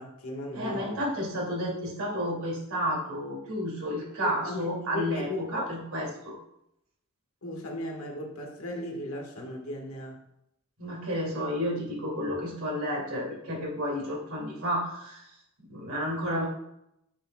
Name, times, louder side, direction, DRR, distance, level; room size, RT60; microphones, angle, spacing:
voice 1, 0.0-1.0 4.2-5.6 7.4-10.2, left 1 dB, 85° left, 1 dB, 1.5 m, -36 dB
voice 2, 0.5-6.4 10.8-15.3 15.7-16.5, equal, 85° right, -2 dB, 2.5 m, -31 dB
8.3 x 6.4 x 2.3 m, 0.79 s
head